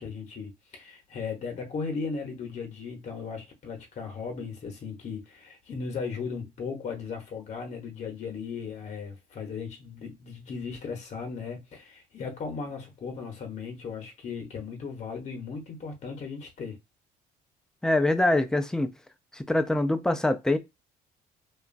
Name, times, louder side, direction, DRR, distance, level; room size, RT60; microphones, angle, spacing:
voice 1, 0.0-16.8, left 5 dB, 45° left, 0.8 m, -37 dB
voice 2, 17.8-18.9 19.3-20.6, left 1 dB, 5° left, 0.4 m, -24 dB
2.9 x 2.3 x 2.5 m
cardioid pair, 110°, 17 cm